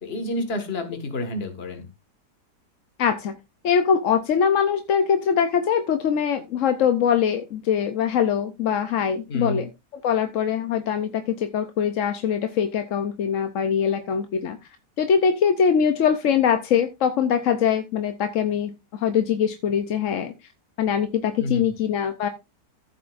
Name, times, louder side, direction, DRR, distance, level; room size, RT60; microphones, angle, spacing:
voice 1, 0.0-1.9 9.3-9.7 21.4-21.7, left 1 dB, 35° left, 6 dB, 1.9 m, -29 dB
voice 2, 3.0-3.3 3.6-9.7 10.0-14.6 15.0-20.3 20.8-22.3, left 7 dB, 60° left, 9 dB, 1.0 m, -22 dB
14.5 x 7.7 x 2.5 m, 0.23 s
omnidirectional pair, 1.8 m